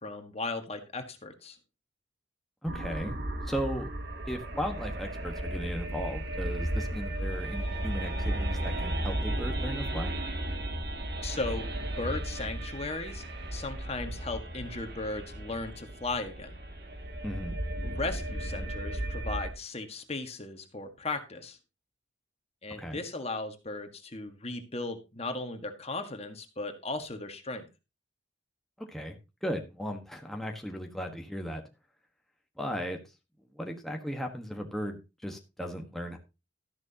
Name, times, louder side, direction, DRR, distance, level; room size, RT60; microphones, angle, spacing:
voice 1, 0.0-1.6 11.2-11.7 12.0-16.6 17.8-21.6 22.6-27.7, left 3 dB, 35° left, 7 dB, 1.6 m, -36 dB
voice 2, 2.6-3.2 3.4-3.9 4.2-10.1 17.2-17.6 22.7-23.0 28.8-31.6 32.6-33.0 33.5-36.2, equal, ahead, 2 dB, 1.4 m, -36 dB
sound 1, 2.7-19.5, right 1 dB, 60° right, 2.3 m, -34 dB
13.5 x 10.5 x 2.9 m, 0.28 s
head